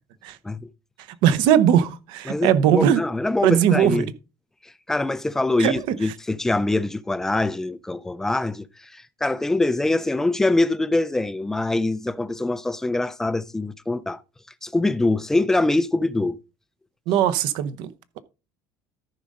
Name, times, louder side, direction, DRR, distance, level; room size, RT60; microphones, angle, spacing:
voice 1, 1.2-3.0 3.4-4.1 5.6-5.9 17.1-17.9, right 9 dB, 60° right, 0.9 m, -19 dB
voice 2, 2.3-4.1 4.6-14.2 14.6-16.4, left 2 dB, 5° left, 0.4 m, -24 dB
13.5 x 5.3 x 3.7 m
cardioid pair, 175°, 9 cm